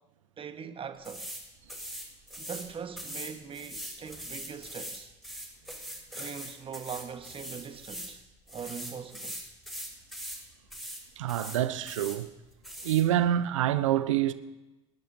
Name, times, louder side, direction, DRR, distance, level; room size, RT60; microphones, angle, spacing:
voice 1, 0.4-1.2 2.4-5.1 6.1-8.2 8.5-9.4, right 7 dB, 35° right, 1.4 m, -41 dB
sound 1, 1.0-1.4 1.7-2.7 3.0-8.1 8.5-10.4 10.7-11.0 11.3-12.2 12.6-13.0, equal, ahead, 6.4 m, -41 dB
voice 2, 11.2-12.3 12.8-14.3, right 12 dB, 75° right, 0.7 m, -26 dB
26.5 x 11.5 x 2.8 m
hypercardioid pair, 65°, 16 cm